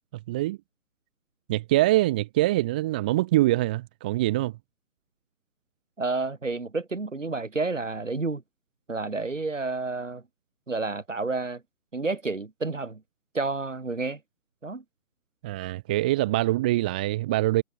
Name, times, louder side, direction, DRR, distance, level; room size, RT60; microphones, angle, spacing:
voice 1, 0.3-0.6 1.5-4.5 15.4-17.6, right 17 dB, 5° right, 1.5 m, -24 dB
voice 2, 6.0-8.4 8.9-10.2 10.7-11.6 11.9-13.0 13.3-14.2 14.6-14.8, right 3 dB, 60° right, 7.7 m, -30 dB
figure-of-eight pair, 160°, 43 cm